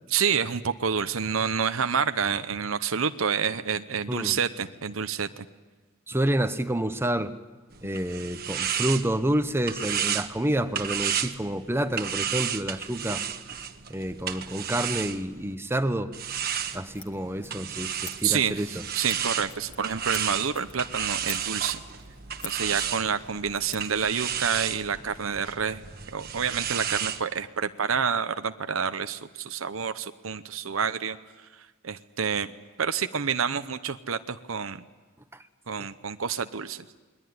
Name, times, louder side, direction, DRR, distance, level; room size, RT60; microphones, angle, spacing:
voice 1, 0.1-5.5 18.2-21.8 22.4-25.8 26.1-31.2 31.8-34.8 35.7-36.9, right 6 dB, 75° right, 10 dB, 0.9 m, -28 dB
voice 2, 6.1-7.3 7.8-13.2 13.9-16.1 16.7-18.8, right 1 dB, 10° right, 10 dB, 0.9 m, -28 dB
sound 1, 7.7-15.5 16.1-27.2, right 9 dB, 45° right, 1.3 m, -33 dB
Scissors, 16.4-24.4, left 4 dB, 25° left, 2.2 m, -47 dB
28.5 x 21.5 x 9.6 m, 1.3 s
head